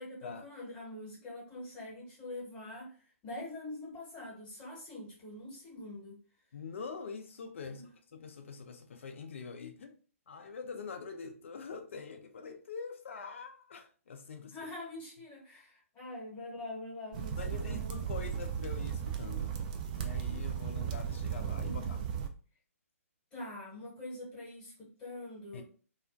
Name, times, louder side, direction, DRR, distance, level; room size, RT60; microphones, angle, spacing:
voice 1, 0.0-3.0 3.2-6.2 7.7-7.9 14.4-18.4 21.6-22.2 23.3-25.6, left 2 dB, 15° left, 1.0 m, -45 dB
voice 2, 6.5-7.8 8.1-9.9 10.3-14.6 17.4-19.6 19.9-22.0 25.5-25.6, left 5 dB, 55° left, 0.4 m, -44 dB
sound 1, 17.1-22.3, right 8 dB, 30° right, 0.3 m, -36 dB
2.3 x 2.2 x 2.5 m
figure-of-eight pair, 135°, 8 cm